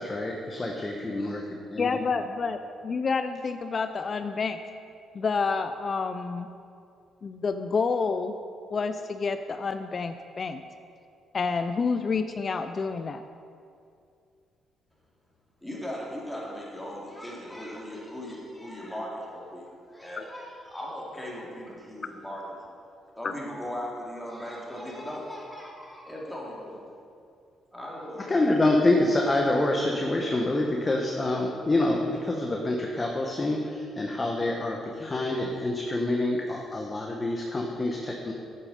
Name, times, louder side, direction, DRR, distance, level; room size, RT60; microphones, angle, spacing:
voice 1, 0.0-2.0 28.3-38.3, left 2 dB, 25° left, 1 dB, 1.0 m, -26 dB
voice 2, 1.8-4.6 5.1-6.5 7.2-8.3 8.7-10.6 11.3-13.2 20.2-20.3 23.2-23.3, left 4 dB, 40° left, 9 dB, 0.4 m, -29 dB
voice 3, 15.6-22.6 23.2-26.8 27.7-28.5, equal, 5° left, -5 dB, 2.6 m, -38 dB
8.4 x 8.3 x 5.3 m, 2.4 s
cardioid pair, 90°, 0 cm